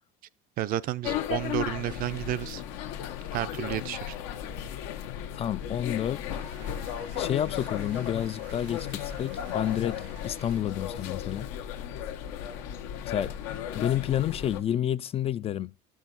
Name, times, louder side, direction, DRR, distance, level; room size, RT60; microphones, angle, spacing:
voice 1, 0.6-2.6 3.3-4.2, right 13 dB, 50° right, 0.5 m, -31 dB
sound 1, 1.0-14.6, left 10 dB, 80° left, 1.1 m, -35 dB
voice 2, 5.3-6.2 7.2-11.5 13.1-13.4 13.7-15.7, left 10 dB, 35° left, 0.4 m, -30 dB
sound 2, 5.6-10.6, right 12 dB, 80° right, 0.9 m, -54 dB
10.5 x 6.3 x 3.9 m
supercardioid pair, 115°, 18 cm